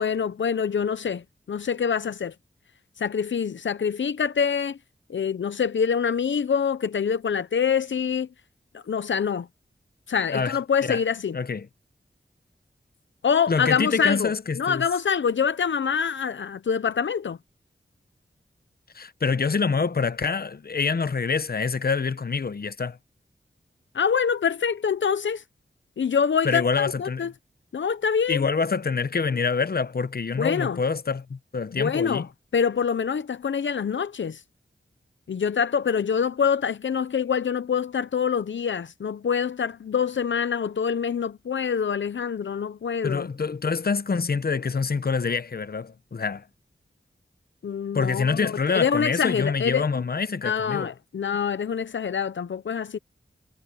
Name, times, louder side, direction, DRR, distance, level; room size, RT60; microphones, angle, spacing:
voice 1, 0.0-2.3 3.0-4.8 5.1-8.3 8.9-9.5 10.1-11.4 13.2-17.4 23.9-25.4 26.0-27.3 27.7-28.4 30.4-30.8 31.7-32.3 32.5-34.4 35.3-43.3 47.6-49.8 50.4-53.0, left 7 dB, 85° left, 0.7 m, -25 dB
voice 2, 11.3-11.7 13.5-14.8 18.9-23.0 26.4-27.3 28.3-32.3 43.0-46.4 47.9-50.9, left 5 dB, 55° left, 0.8 m, -26 dB
cardioid pair, 50°, 19 cm